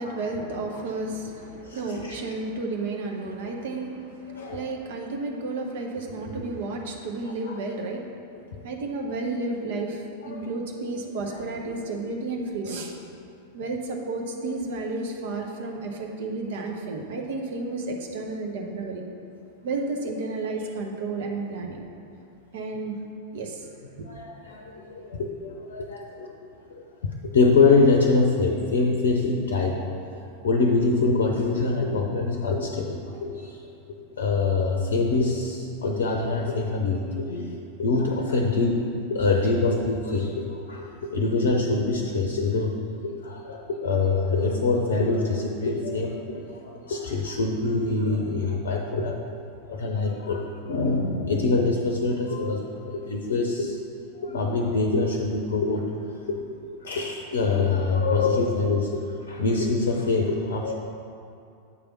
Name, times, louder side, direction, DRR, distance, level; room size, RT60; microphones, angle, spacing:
voice 1, 0.0-8.0 8.6-12.9 13.5-19.0 19.6-21.8 22.5-23.0 23.3-23.7 24.0-24.1, right 3 dB, 55° right, 1 dB, 0.9 m, -32 dB
voice 2, 1.6-2.3 4.3-4.7 7.4-7.6 8.5-8.6 10.2-10.4 24.0-33.7 34.1-49.2 49.6-53.8 54.1-55.8 56.3-60.7, left 3 dB, 60° left, 2 dB, 0.6 m, -25 dB
8.3 x 3.4 x 5.8 m, 2.5 s
figure-of-eight pair, 90°, 0 cm